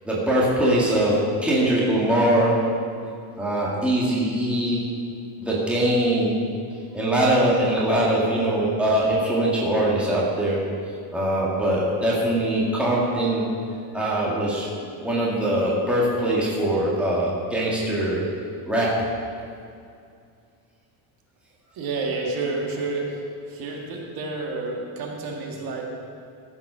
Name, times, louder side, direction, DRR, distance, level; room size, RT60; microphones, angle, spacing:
voice 1, 0.1-2.6 3.4-4.8 5.4-6.4 6.9-10.7 11.1-13.5 13.9-14.7 15.0-18.3 18.7-19.0, right 1 dB, ahead, -6 dB, 1.8 m, -22 dB
voice 2, 21.8-23.2 23.5-25.8, right 3 dB, 50° right, 0 dB, 1.8 m, -29 dB
15.0 x 7.4 x 6.1 m, 2.4 s
cardioid pair, 180°, 47 cm